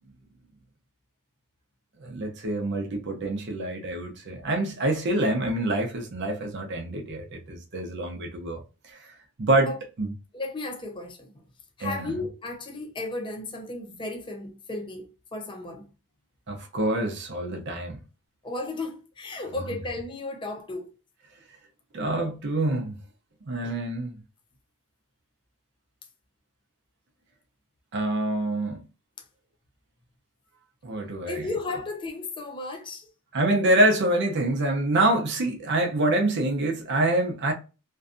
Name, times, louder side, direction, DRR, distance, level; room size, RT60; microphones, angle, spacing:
voice 1, 2.0-8.6 8.9-9.1 9.4-10.1 11.8-12.1 16.5-18.0 21.9-23.0 23.5-24.2 27.9-28.8 30.8-31.5 33.3-37.5, right 1 dB, 50° right, 0.6 m, -26 dB
voice 2, 10.3-11.4 11.8-15.9 18.4-20.9 31.2-33.1, left 2 dB, 20° left, 0.5 m, -34 dB
2.5 x 2.2 x 2.5 m
head